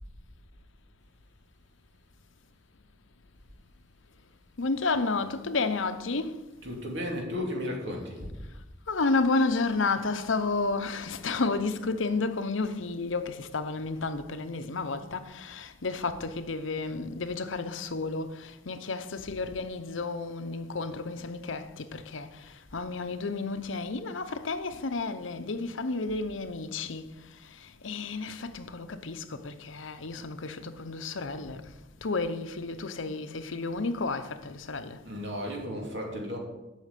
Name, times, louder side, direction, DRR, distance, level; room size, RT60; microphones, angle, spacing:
voice 1, 4.6-6.4 8.9-27.1 27.6-31.6 32.0-35.0, left 3 dB, 75° left, 0.8 m, -31 dB
voice 2, 6.6-8.4 35.0-36.4, left 1 dB, 65° right, 2.7 m, -34 dB
8.4 x 6.5 x 8.4 m
head